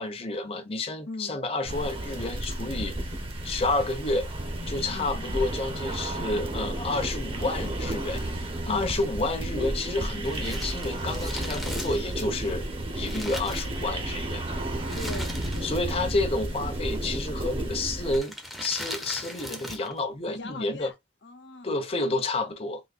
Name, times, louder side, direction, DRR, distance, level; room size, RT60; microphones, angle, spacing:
voice 1, 0.0-2.9 3.4-4.3 4.7-8.2 8.7-12.7 12.9-14.5 15.6-18.3 18.6-20.9 21.6-22.8, left 2 dB, 35° left, 0.8 m, -30 dB
voice 2, 1.1-1.4 4.9-5.2 8.7-8.9 14.9-15.7 20.2-20.9 21.2-21.8, left 2 dB, 80° left, 0.9 m, -39 dB
sound 1, 1.7-18.2, right 1 dB, 30° right, 0.9 m, -32 dB
Crumpling crinkling, 10.2-14.2 14.8-15.9 16.1-16.2 17.1-17.4 18.1-20.0 20.2-20.3, equal, ahead, 0.7 m, -39 dB
4.0 x 2.8 x 2.5 m
head